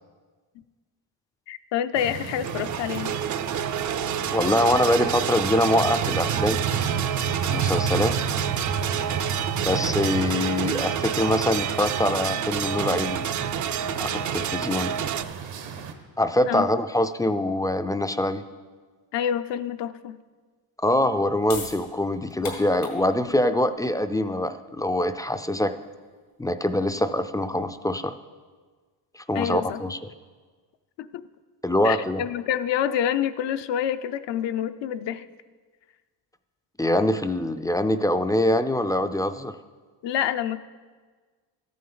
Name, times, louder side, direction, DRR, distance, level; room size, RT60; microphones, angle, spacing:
voice 1, 1.5-3.1 16.5-16.7 19.1-20.2 29.3-29.8 31.0-31.2 31.8-35.3 40.0-40.6, left 10 dB, 70° left, 12 dB, 0.7 m, -27 dB
sound 1, 2.0-15.9, right 6 dB, 75° right, 1.2 m, -32 dB
sound 2, 2.4-15.2, right 9 dB, 40° right, 0.5 m, -29 dB
voice 2, 4.3-6.6 7.4-8.1 9.7-13.2 14.0-14.9 16.2-18.4 20.8-25.7 26.4-28.1 29.2-30.0 31.6-32.2 36.8-39.5, left 1 dB, 10° left, 10 dB, 0.4 m, -24 dB
sound 3, 21.0-27.8, left 5 dB, 85° left, 2.3 m, -42 dB
13.5 x 8.5 x 3.9 m, 1.5 s
cardioid pair, 90°, 45 cm